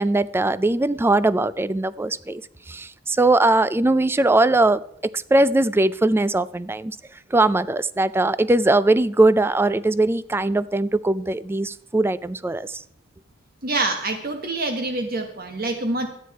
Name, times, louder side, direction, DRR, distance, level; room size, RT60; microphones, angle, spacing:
voice 1, 0.0-2.4 2.7-7.0 7.3-12.8, right 2 dB, 10° right, 16 dB, 0.3 m, -20 dB
voice 2, 13.6-16.1, right 2 dB, 50° right, 6 dB, 1.1 m, -26 dB
12.5 x 9.4 x 4.6 m, 0.71 s
head